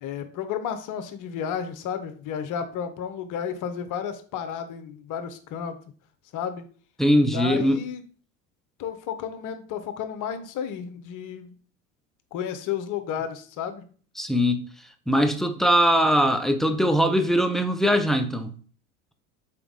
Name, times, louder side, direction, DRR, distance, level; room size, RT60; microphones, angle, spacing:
voice 1, 0.0-5.8 6.3-6.6 7.3-8.0 8.8-11.5 12.3-13.8, left 8 dB, 45° left, 0.9 m, -32 dB
voice 2, 7.0-7.8 14.2-14.6 15.1-18.5, equal, ahead, 0.5 m, -21 dB
4.0 x 3.4 x 3.9 m
hypercardioid pair, 75°, 42 cm